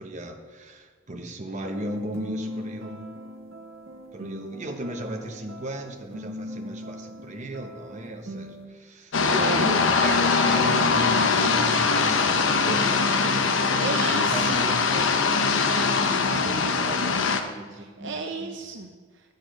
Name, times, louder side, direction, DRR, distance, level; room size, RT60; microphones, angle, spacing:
voice 1, 0.0-3.1 4.1-9.4 9.7-13.0 13.7-14.0 14.3-15.9 16.2-18.6, right 1 dB, 35° right, 4 dB, 0.9 m, -36 dB
sound 1, 1.6-8.7, equal, 85° right, 1.4 m, -40 dB
sound 2, 9.1-17.4, left 4 dB, 70° left, 0.8 m, -22 dB
voice 2, 9.2-10.2 13.8-14.6 17.7-19.3, right 4 dB, 60° right, 4 dB, 0.6 m, -33 dB
9.7 x 6.6 x 5.1 m, 1.5 s
head